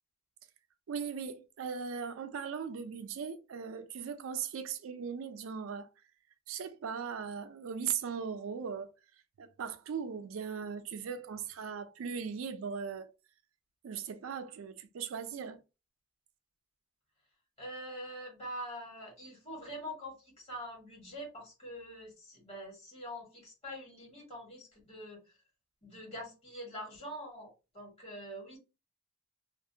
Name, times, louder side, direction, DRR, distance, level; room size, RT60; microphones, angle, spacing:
voice 1, 0.9-5.9 6.5-8.9 9.4-13.1 13.8-15.6, right 6 dB, 80° right, 0.4 m, -38 dB
voice 2, 17.6-25.2 25.8-28.6, equal, 30° left, 1.3 m, -44 dB
2.4 x 2.1 x 2.6 m
head